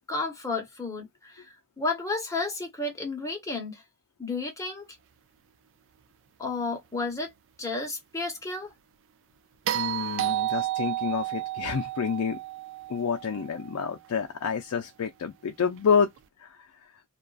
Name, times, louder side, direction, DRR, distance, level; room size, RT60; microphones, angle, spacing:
voice 1, 0.1-1.5 1.8-3.8 4.2-4.8 6.4-7.3 7.6-8.7, left 3 dB, 15° left, 1.0 m, -32 dB
voice 2, 9.7-12.4 12.9-16.1 16.4-16.6, left 6 dB, 75° left, 0.4 m, -28 dB
sound 1, 9.7-13.9 16.2-16.3, right 14 dB, 60° right, 0.3 m, -31 dB
2.4 x 2.3 x 2.3 m
head